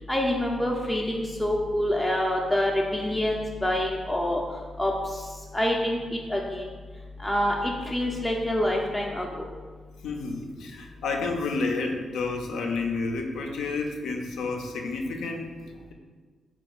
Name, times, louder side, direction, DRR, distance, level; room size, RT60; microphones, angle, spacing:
voice 1, 0.1-4.4 4.8-4.9 5.5-6.0 6.3-6.6 7.2-9.5, left 1 dB, 10° left, -1 dB, 0.4 m, -26 dB
voice 2, 10.0-15.9, left 3 dB, 85° left, 2 dB, 0.4 m, -30 dB
3.7 x 2.2 x 4.0 m, 1.5 s
cardioid pair, 85°, 0 cm